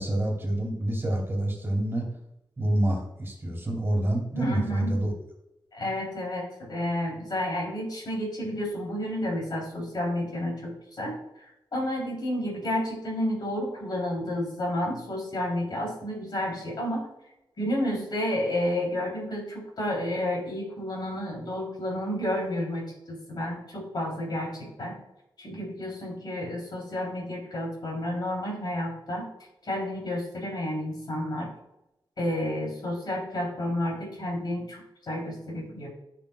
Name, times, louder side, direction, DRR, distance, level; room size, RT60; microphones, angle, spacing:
voice 1, 0.0-2.1 2.6-5.1, right 1 dB, 30° right, -1 dB, 2.5 m, -27 dB
voice 2, 4.3-4.9 5.7-11.1 11.7-17.1 17.6-25.0 25.4-29.3 29.7-31.5 32.2-35.9, left 1 dB, 55° left, -2 dB, 3.2 m, -31 dB
16.0 x 5.8 x 2.3 m, 0.85 s
wide cardioid pair, 155°, 9 cm